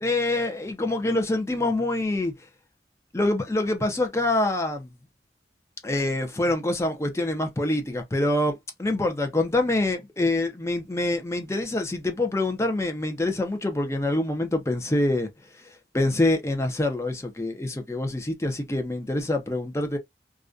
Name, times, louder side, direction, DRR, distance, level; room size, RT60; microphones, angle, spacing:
voice 1, 0.0-2.3 3.1-4.9 5.8-15.3 15.9-20.0, left 2 dB, 15° left, 0.4 m, -25 dB
2.4 x 2.2 x 2.4 m
head